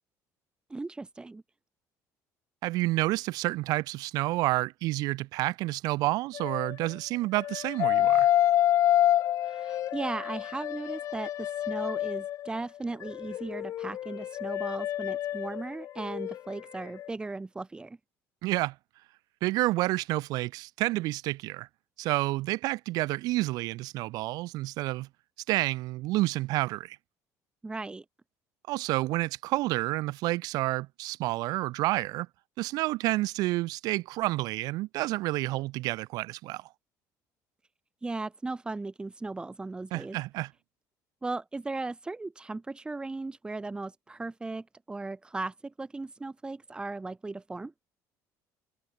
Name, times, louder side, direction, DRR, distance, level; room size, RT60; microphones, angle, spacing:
voice 1, 0.7-1.4 9.4-18.0 27.6-28.0 38.0-40.2 41.2-47.7, right 3 dB, 15° right, 2.4 m, -37 dB
voice 2, 2.6-8.3 18.4-18.8 19.4-21.7 22.0-25.1 25.5-27.0 28.7-32.3 32.6-36.7 39.9-40.5, right 19 dB, 70° right, 0.6 m, -29 dB
sound 1, 6.3-6.9 7.4-12.5 13.0-16.6 16.9-17.1, left 12 dB, 55° left, 1.3 m, -28 dB
cardioid pair, 130°, 7 cm